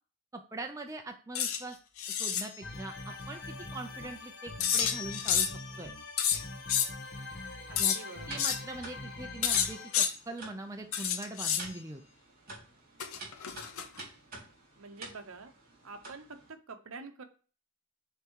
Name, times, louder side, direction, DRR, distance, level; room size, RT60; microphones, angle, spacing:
voice 1, 0.3-1.8 2.2-3.4 3.7-5.5 5.8-5.9 7.8-8.0 8.3-12.0, right 2 dB, 15° right, 3 dB, 0.5 m, -42 dB
sound 1, 1.3-1.6 2.0-2.5 4.6-5.6 6.2-6.9 7.8-8.0 8.4-8.6 9.4-10.1 10.9-11.7 13.0-14.0, left 8 dB, 75° left, 0.7 m, -29 dB
sound 2, 2.6-10.0, left 2 dB, 45° left, 1.4 m, -43 dB
sound 3, 7.7-16.5, right 3 dB, 40° right, 3.2 m, -50 dB
voice 2, 7.7-8.4 14.8-15.5 15.8-17.2, right 4 dB, 70° right, 8 dB, 0.8 m, -47 dB
6.7 x 3.6 x 4.6 m, 0.38 s
head